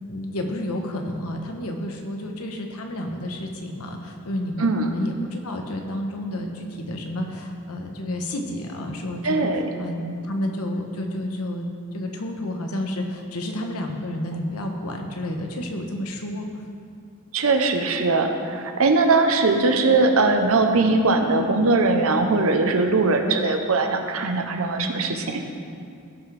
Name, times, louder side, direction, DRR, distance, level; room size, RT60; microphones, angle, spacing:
voice 1, 0.1-9.5 9.8-11.7 11.9-16.5, left 1 dB, 90° left, 3 dB, 1.1 m, -30 dB
voice 2, 4.6-4.9 9.2-9.7 17.3-25.4, right 3 dB, 70° right, 5 dB, 0.8 m, -20 dB
16.0 x 5.8 x 3.4 m, 2.4 s
head